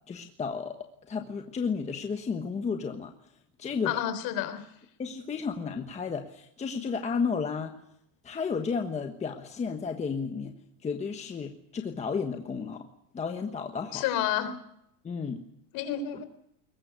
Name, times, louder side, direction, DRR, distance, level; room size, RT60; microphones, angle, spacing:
voice 1, 0.1-3.1 3.6-4.0 5.0-7.8 8.2-10.6 10.8-12.9 13.1-14.0 15.0-15.4 16.1-16.2, left 5 dB, 15° left, 5 dB, 1.3 m, -32 dB
voice 2, 3.8-4.6 13.9-14.5 15.7-16.2, left 10 dB, 45° left, 12 dB, 3.8 m, -30 dB
22.5 x 20.0 x 8.0 m, 0.74 s
supercardioid pair, 160°, 50 cm